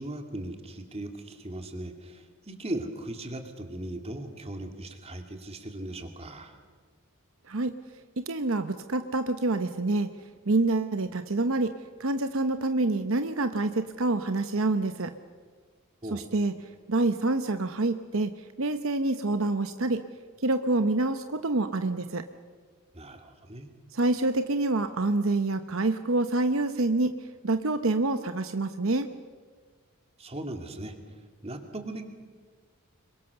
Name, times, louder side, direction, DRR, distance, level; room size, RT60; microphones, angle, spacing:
voice 1, 0.0-6.6 16.0-16.2 22.9-23.7 30.2-30.9 31.4-32.1, right 1 dB, 30° right, 5 dB, 2.4 m, -38 dB
voice 2, 8.2-10.1 10.5-11.7 12.0-15.1 16.1-16.5 16.9-18.3 18.6-20.0 20.4-22.2 23.9-27.1 27.4-29.1, right 2 dB, 65° right, 9 dB, 0.9 m, -27 dB
26.0 x 23.0 x 6.8 m, 1.6 s
head